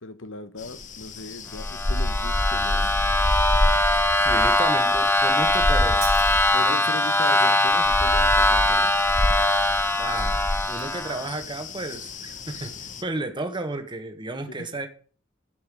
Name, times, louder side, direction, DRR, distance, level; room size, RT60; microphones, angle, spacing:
voice 1, 0.0-2.9 6.5-8.9 14.6-14.8, left 2 dB, 70° left, 11 dB, 1.2 m, -38 dB
sound 1, 0.6-13.0, left 2 dB, 40° left, 1.1 m, -29 dB
sound 2, 1.6-11.3, left 1 dB, 10° left, 0.6 m, -22 dB
voice 2, 4.1-6.1 6.6-6.8 10.0-10.4 10.7-14.9, right 2 dB, 25° right, 7 dB, 1.6 m, -33 dB
Shatter, 6.0-7.0, right 11 dB, 75° right, 3.8 m, -39 dB
12.5 x 5.6 x 6.9 m, 0.40 s
head